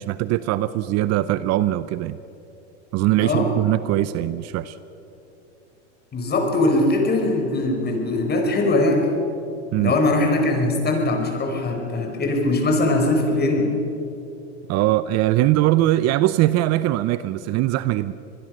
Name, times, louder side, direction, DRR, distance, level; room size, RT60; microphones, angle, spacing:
voice 1, 0.0-2.2 2.9-4.8 9.7-9.9 14.7-18.1, right 15 dB, 45° right, 15 dB, 0.7 m, -21 dB
voice 2, 3.1-3.5 6.1-9.1 9.8-13.7, left 2 dB, 25° left, 3 dB, 5.0 m, -21 dB
25.5 x 20.5 x 6.5 m, 2.9 s
supercardioid pair, 110°, 36 cm